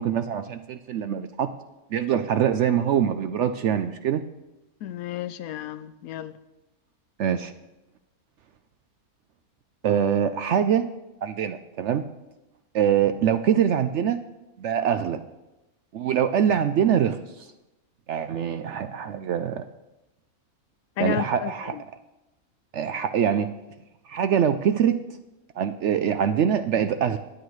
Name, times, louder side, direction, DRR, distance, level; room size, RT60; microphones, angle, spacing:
voice 1, 0.0-1.5 1.9-4.2 7.2-7.5 9.8-10.9 11.2-12.0 12.7-14.2 14.6-15.2 15.9-17.2 18.1-19.6 21.0-21.7 22.7-23.5 24.1-25.0 25.6-27.2, right 9 dB, 65° right, 9 dB, 0.7 m, -23 dB
voice 2, 4.8-6.3 21.0-21.8, left 11 dB, 80° left, 14 dB, 1.0 m, -32 dB
20.5 x 8.9 x 3.2 m, 0.98 s
omnidirectional pair, 1.6 m